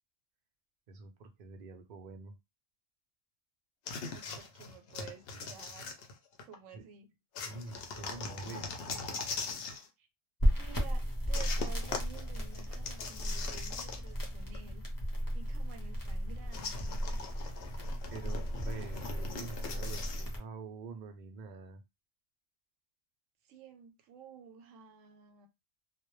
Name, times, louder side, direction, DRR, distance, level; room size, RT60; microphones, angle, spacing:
voice 1, 0.9-2.3 6.7-6.8 7.4-9.0 18.1-21.8, right 4 dB, 60° right, 0.5 m, -46 dB
sound 1, 3.9-6.6 7.3-9.9 11.3-14.3 14.5-14.6 16.5-20.3, left 4 dB, 60° left, 0.7 m, -41 dB
voice 2, 4.1-6.0 6.4-7.1 10.0-10.1 10.6-14.9 15.3-17.0 23.5-25.5, right 7 dB, 90° right, 1.0 m, -52 dB
sound 2, 10.4-20.4, equal, 25° left, 0.5 m, -35 dB
2.2 x 2.0 x 3.0 m
omnidirectional pair, 1.3 m